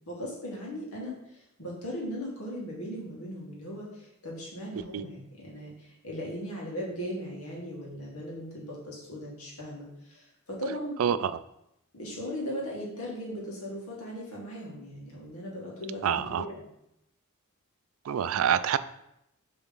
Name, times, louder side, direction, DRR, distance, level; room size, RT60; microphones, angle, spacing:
voice 1, 0.1-11.0 11.9-16.7, equal, 80° left, -3 dB, 1.9 m, -38 dB
voice 2, 11.0-11.3 16.0-16.4 18.0-18.8, right 8 dB, 65° right, 14 dB, 0.3 m, -26 dB
7.0 x 3.5 x 3.9 m, 0.83 s
head